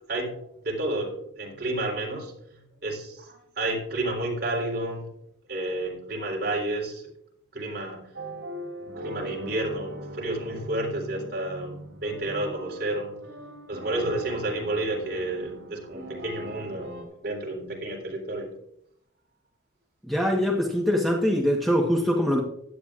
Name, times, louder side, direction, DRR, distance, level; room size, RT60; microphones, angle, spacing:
voice 1, 0.1-5.1 5.5-7.1 7.5-8.1 9.0-13.2 13.7-18.5, right 1 dB, 50° right, 3.9 m, -31 dB
sound 1, 8.1-17.0, right 1 dB, 80° right, 2.9 m, -40 dB
voice 2, 20.0-22.4, equal, ahead, 1.2 m, -23 dB
16.0 x 11.5 x 2.5 m
head